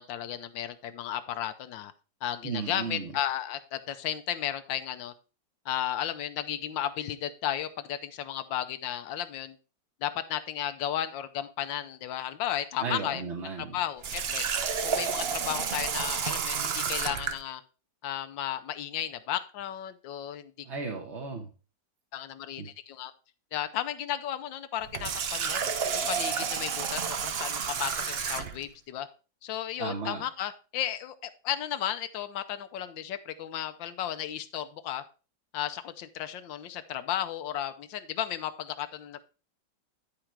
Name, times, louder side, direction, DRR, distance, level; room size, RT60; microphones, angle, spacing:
voice 1, 0.0-1.9 2.2-5.1 5.6-9.6 10.0-13.2 13.6-14.4 14.8-17.6 18.0-20.5 22.1-23.1 23.5-25.6 25.9-29.1 29.4-35.0 35.5-39.3, left 11 dB, 80° left, 10 dB, 1.4 m, -34 dB
voice 2, 2.4-3.1 12.8-13.8 20.6-21.5 22.6-22.7 29.8-30.2, right 4 dB, 40° right, 1 dB, 1.2 m, -35 dB
Water tap faucet, 14.0-17.4 24.8-28.7, right 6 dB, 65° right, 0.6 m, -31 dB
10.5 x 4.9 x 4.5 m, 0.34 s
omnidirectional pair, 2.0 m